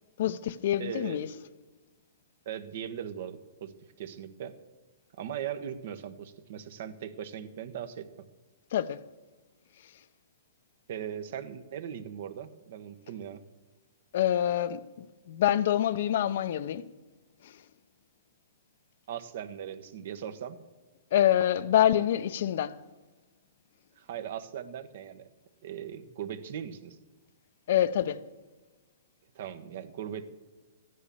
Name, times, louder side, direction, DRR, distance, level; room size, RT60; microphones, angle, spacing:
voice 1, 0.2-1.3 8.7-9.0 14.1-16.8 17.4-17.5 21.1-22.8 27.7-28.2, left 11 dB, 60° left, 0.6 m, -26 dB
voice 2, 0.8-1.2 2.4-3.7 4.0-4.6 5.2-8.1 10.9-13.4 19.1-20.6 24.0-25.3 25.6-27.0 29.3-30.3, right 9 dB, 55° right, 1.1 m, -39 dB
14.0 x 9.9 x 7.0 m
hypercardioid pair, 145°, 0 cm